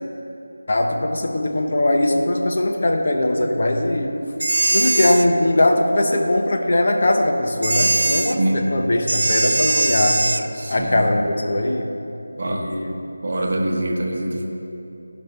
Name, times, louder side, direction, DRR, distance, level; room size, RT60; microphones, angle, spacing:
voice 1, 0.7-4.1 4.7-10.2 10.7-12.0 12.5-12.9, left 1 dB, 40° left, 2 dB, 0.8 m, -20 dB
sound 1, 4.4-5.3 7.6-8.3 9.1-10.4, right 2 dB, 65° right, 0.6 m, -20 dB
voice 2, 8.4-8.7 10.6-11.0 12.4-12.7 13.2-14.5, right 1 dB, 40° right, 1 dB, 1.0 m, -24 dB
15.0 x 5.2 x 5.5 m, 3.0 s
figure-of-eight pair, 175°, 0 cm